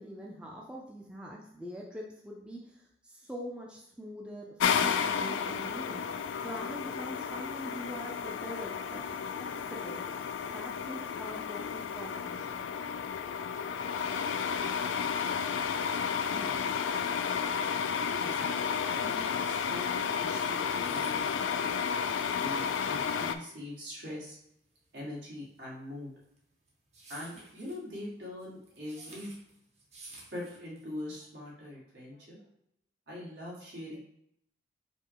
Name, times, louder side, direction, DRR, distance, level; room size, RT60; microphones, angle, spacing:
voice 1, 0.0-10.0 10.4-12.7, equal, 5° right, -3 dB, 0.5 m, -44 dB
sound 1, 4.6-23.3, left 7 dB, 85° left, 0.3 m, -32 dB
voice 2, 18.2-21.8 22.4-24.4 24.9-26.1 27.1-29.3 30.3-32.4 33.1-34.0, left 1 dB, 70° right, -4 dB, 1.7 m, -43 dB
sound 2, 20.7-31.1, right 2 dB, 35° right, 0.9 m, -54 dB
5.2 x 2.2 x 4.6 m, 0.74 s
head